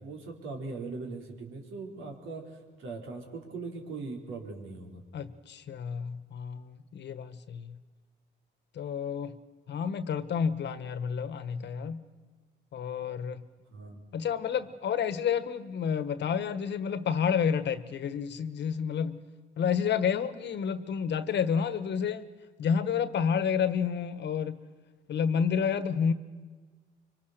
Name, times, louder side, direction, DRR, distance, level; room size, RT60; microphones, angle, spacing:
voice 1, 0.0-2.5 2.8-5.0 13.7-14.0, right 3 dB, 85° right, 1 dB, 4.2 m, -40 dB
voice 2, 5.1-7.8 8.7-9.4 9.7-12.0 12.7-13.4 14.1-19.2 19.6-22.2 22.6-24.6 25.1-26.1, left 7 dB, 60° left, 13 dB, 1.3 m, -30 dB
25.0 x 24.5 x 6.7 m, 1.4 s
cardioid pair, 90°, 20 cm